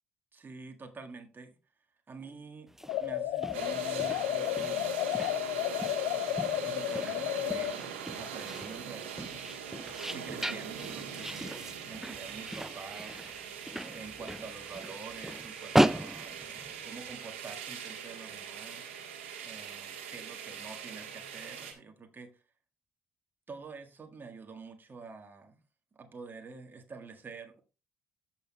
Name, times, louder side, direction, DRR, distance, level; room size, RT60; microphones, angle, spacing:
voice 1, 0.3-1.6 2.1-2.7 3.0-4.9 6.6-7.7 8.1-9.2 10.1-13.2 13.8-16.4 16.8-18.9 19.4-22.4 23.5-25.6 25.9-27.6, right 4 dB, 30° right, 1.6 m, -47 dB
sound 1, 2.7-17.1, right 1 dB, 5° right, 0.4 m, -36 dB
sound 2, 2.9-7.8, left 12 dB, 70° left, 0.5 m, -32 dB
sound 3, 3.5-21.7, right 7 dB, 80° right, 1.4 m, -42 dB
14.0 x 6.0 x 2.3 m
hypercardioid pair, 50°, 6 cm